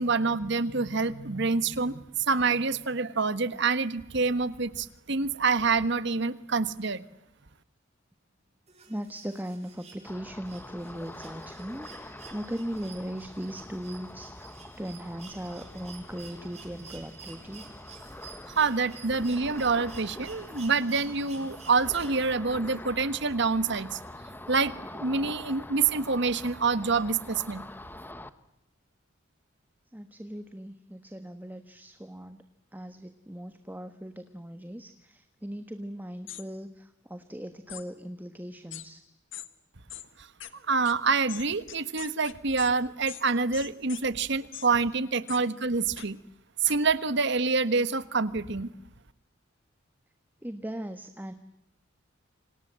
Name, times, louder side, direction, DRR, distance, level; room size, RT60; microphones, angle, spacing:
voice 1, 0.0-7.0 18.5-24.0 24.5-27.6 40.7-46.2 46.6-48.7, right 4 dB, 60° right, 14 dB, 1.4 m, -27 dB
sound 1, 8.7-22.6 24.0-24.1, right 6 dB, 35° right, 6.2 m, -51 dB
voice 2, 8.9-14.5 14.8-17.7 29.9-32.4 32.7-39.0 50.4-51.3, equal, 10° right, 9 dB, 1.4 m, -39 dB
Ocean, 10.0-28.3, left 1 dB, 10° left, 1.3 m, -45 dB
sound 2, 36.3-36.4 37.7-37.8 38.7-38.9 39.3-39.5 39.9-40.1 40.4-40.5 40.9-41.0 41.3-42.7 43.1-43.2 43.5-44.0 44.5-44.7 45.3-45.4 46.0-46.1 46.7-46.8, left 12 dB, 65° left, 1.7 m, -41 dB
29.0 x 27.0 x 7.6 m, 0.83 s
head